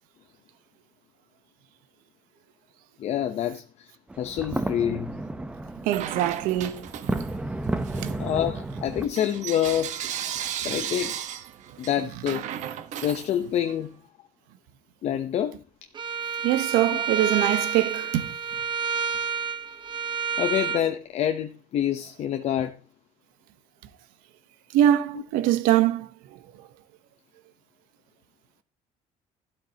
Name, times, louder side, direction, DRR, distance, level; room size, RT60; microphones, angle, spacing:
voice 1, 3.0-3.9 4.2-5.1 8.2-9.9 10.5-11.1 11.8-12.4 13.0-13.9 15.0-15.6 20.4-22.8, left 10 dB, 50° left, 0.9 m, -27 dB
sound 1, 4.1-9.1, right 2 dB, 10° right, 0.8 m, -32 dB
voice 2, 5.8-7.2 8.0-8.2 16.4-18.3 24.7-26.1, right 12 dB, 85° right, 1.1 m, -23 dB
Bell / Coin (dropping), 5.9-7.4 7.8-13.8, right 10 dB, 60° right, 1.2 m, -35 dB
Bowed string instrument, 16.0-20.8, right 6 dB, 30° right, 1.3 m, -29 dB
13.0 x 12.0 x 2.9 m
cardioid pair, 140°, 14 cm